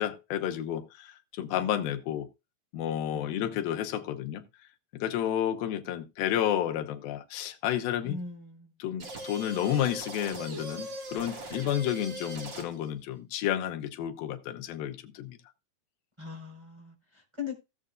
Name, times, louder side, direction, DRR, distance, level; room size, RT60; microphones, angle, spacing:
voice 1, 0.0-2.3 2.7-4.4 4.9-8.2 8.8-15.4, left 11 dB, 90° left, 2.9 m, -31 dB
voice 2, 3.1-3.9 8.0-8.7 16.2-17.6, left 5 dB, 5° right, 4.8 m, -41 dB
sound 1, 9.0-12.9, right 1 dB, 35° right, 2.5 m, -40 dB
17.0 x 7.6 x 2.5 m
omnidirectional pair, 4.1 m